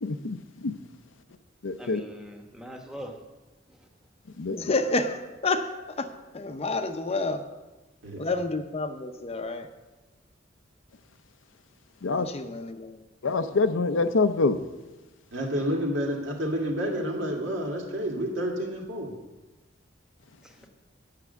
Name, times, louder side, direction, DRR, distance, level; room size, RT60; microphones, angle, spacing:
voice 1, 0.0-0.7 1.6-2.0 4.4-4.6 12.0-12.3 13.2-14.6, left 3 dB, 85° left, 10 dB, 0.6 m, -25 dB
voice 2, 1.8-3.2 3.7-3.9 20.4-20.7, equal, 5° right, 2 dB, 1.1 m, -42 dB
voice 3, 4.5-5.7 6.0-7.4 8.2-9.7 12.1-13.0, left 3 dB, 35° left, 8 dB, 0.6 m, -29 dB
voice 4, 15.3-19.1, equal, 75° right, 0 dB, 2.0 m, -29 dB
8.4 x 6.1 x 7.9 m, 1.1 s
head